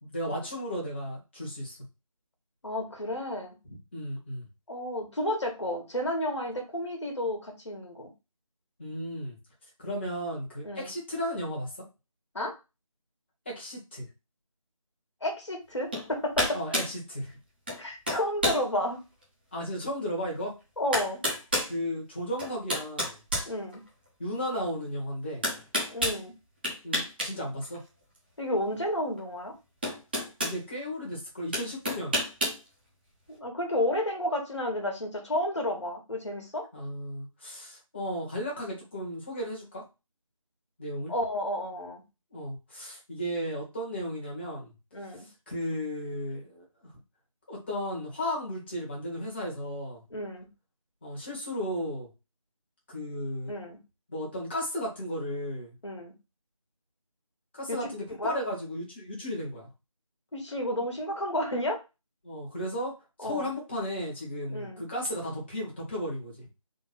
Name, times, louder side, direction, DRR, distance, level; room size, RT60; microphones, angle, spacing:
voice 1, 0.0-1.8 3.7-4.4 8.8-9.4 9.8-11.8 13.4-14.0 16.5-17.3 19.5-20.5 21.7-23.2 24.2-25.5 26.8-27.8 30.4-32.1 36.7-39.8 40.8-41.1 42.3-44.7 45.2-46.9 47.5-50.0 51.0-52.1 52.9-53.5 54.1-55.8 57.5-59.7 62.2-66.4, equal, 20° left, -4 dB, 1.3 m, -34 dB
voice 2, 2.6-3.5 4.7-8.1 10.6-10.9 12.3-12.5 15.2-16.6 17.8-19.0 20.8-21.2 23.5-23.8 25.9-26.3 28.4-29.5 33.3-36.7 41.1-42.0 44.9-45.3 50.1-50.5 53.5-53.8 55.8-56.1 57.7-57.8 58.1-58.3 60.3-61.8 63.2-63.5 64.5-64.8, left 1 dB, 55° left, 3 dB, 1.6 m, -31 dB
sound 1, 15.9-16.1 16.3-16.9 17.7-17.8 18.1-18.6 19.2-19.3 20.4-20.5 20.9-21.7 22.4-24.1 25.4-26.2 26.6-27.3 27.6-27.8 29.2-29.3 29.8-30.6 31.5-32.6, equal, 15° right, 1.0 m, -29 dB
3.8 x 2.7 x 4.0 m, 0.26 s
figure-of-eight pair, 165°, 18 cm